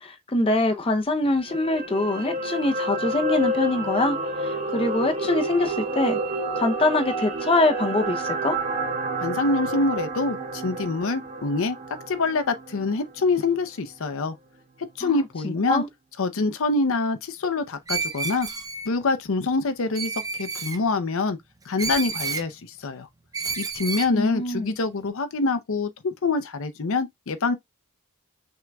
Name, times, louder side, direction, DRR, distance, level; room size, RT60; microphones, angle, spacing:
voice 1, 0.0-6.2 6.6-8.6 15.0-15.9 24.1-24.7, left 2 dB, 25° left, 0.6 m, -24 dB
sound 1, 1.2-13.6 13.9-14.1, right 2 dB, 35° right, 2.3 m, -29 dB
voice 2, 9.2-11.8 12.1-14.4 15.0-15.8 16.2-18.5 18.9-21.4 21.7-23.1 23.6-27.5, left 3 dB, 65° left, 0.6 m, -25 dB
Screech, 17.9-18.9 19.9-20.8 21.8-22.5 23.3-24.1, right 4 dB, 15° right, 0.6 m, -30 dB
5.9 x 3.5 x 2.3 m
head